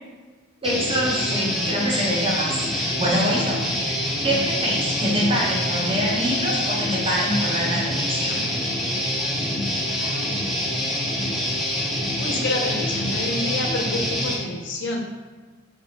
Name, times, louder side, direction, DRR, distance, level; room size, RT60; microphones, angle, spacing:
Guitar, 0.6-14.3, left 1 dB, ahead, 0.5 m, -25 dB
voice 1, 0.6-3.9 4.2-8.5, equal, 25° right, -5 dB, 0.8 m, -25 dB
voice 2, 9.9-10.2 10.5-10.9 12.2-15.0, left 2 dB, 60° left, 0 dB, 0.6 m, -29 dB
3.7 x 2.9 x 2.8 m, 1.4 s
head